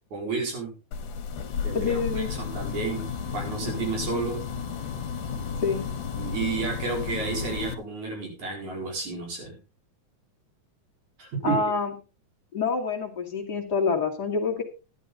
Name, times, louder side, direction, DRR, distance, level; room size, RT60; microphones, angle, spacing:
voice 1, 0.1-0.7 1.6-3.0 3.3-4.4 6.2-9.6 11.2-11.6, right 4 dB, 65° right, 0 dB, 6.0 m, -31 dB
sound 1, 0.9-7.7, left 6 dB, 75° left, 2.9 m, -33 dB
voice 2, 1.7-2.3 5.6-5.8 11.4-11.9 12.5-14.6, left 4 dB, 35° left, 2 dB, 2.5 m, -27 dB
12.5 x 12.0 x 4.0 m, 0.32 s
omnidirectional pair, 3.7 m